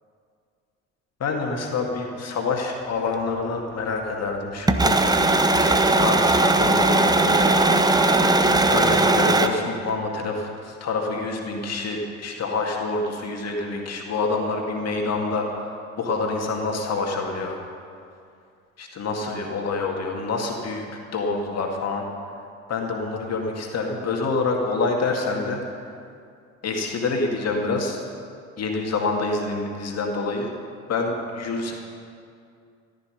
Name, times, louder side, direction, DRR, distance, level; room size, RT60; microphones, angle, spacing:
voice 1, 1.2-5.0 5.6-7.8 8.7-17.6 18.8-20.9 21.1-22.0 22.7-25.6 26.6-28.0 28.6-30.5 30.9-31.7, left 3 dB, 40° left, 1 dB, 2.2 m, -27 dB
sound 1, 4.7-9.5, right 2 dB, 10° right, 0.9 m, -18 dB
14.5 x 13.0 x 5.7 m, 2.4 s
figure-of-eight pair, 55°, 41 cm